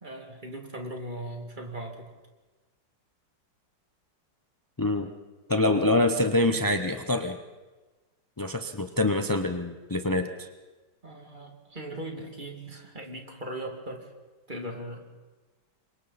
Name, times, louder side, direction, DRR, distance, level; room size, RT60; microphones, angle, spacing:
voice 1, 0.0-2.1 11.0-14.1 14.5-15.1, right 1 dB, 25° right, 2 dB, 2.6 m, -39 dB
voice 2, 4.8-5.1 5.5-7.4 8.4-10.5, left 2 dB, 30° left, 6 dB, 0.4 m, -25 dB
28.0 x 24.5 x 4.2 m, 1.2 s
omnidirectional pair, 2.0 m